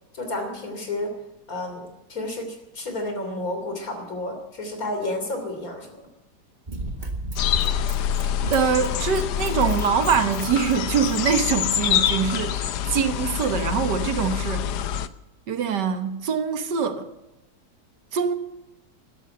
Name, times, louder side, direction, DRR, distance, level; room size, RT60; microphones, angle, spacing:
voice 1, 0.1-1.1 1.5-6.0, left 1 dB, 55° left, 3.6 m, -31 dB
Run, 6.7-11.9 12.5-12.6, right 2 dB, 25° right, 1.7 m, -36 dB
sound 1, 7.4-15.1, left 10 dB, 70° left, 1.3 m, -26 dB
voice 2, 8.5-14.7 15.5-17.1 18.1-18.3, right 7 dB, 75° right, 1.8 m, -24 dB
13.5 x 12.5 x 7.9 m
omnidirectional pair, 1.9 m